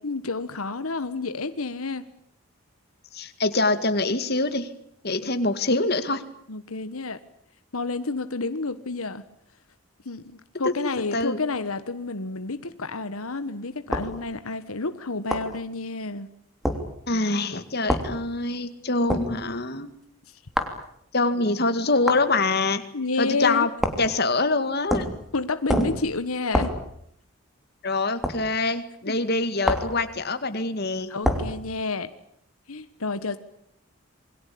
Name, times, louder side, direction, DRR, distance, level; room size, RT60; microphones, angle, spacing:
voice 1, 0.0-2.0 6.5-7.2 7.7-9.2 10.0-16.3 22.9-23.7 25.3-26.7 29.1-29.2 31.1-32.1 32.7-33.4, left 3 dB, 85° left, 11 dB, 1.4 m, -30 dB
voice 2, 3.1-4.7 5.0-6.2 10.6-10.7 11.1-11.4 17.1-19.9 21.1-22.8 23.2-23.7 24.0-25.1 27.8-31.1, left 3 dB, 50° left, 10 dB, 2.2 m, -24 dB
sound 1, 13.9-14.1 15.3-15.5 16.6-16.8 17.9-18.1 19.1-19.3 20.6-20.8 22.1-22.3 23.8-24.1 24.9-25.2 25.7-26.0 26.5-26.8 28.2-28.4 29.6-30.0 31.2-31.5, equal, ahead, 3.3 m, -25 dB
28.0 x 22.5 x 8.6 m, 0.70 s
head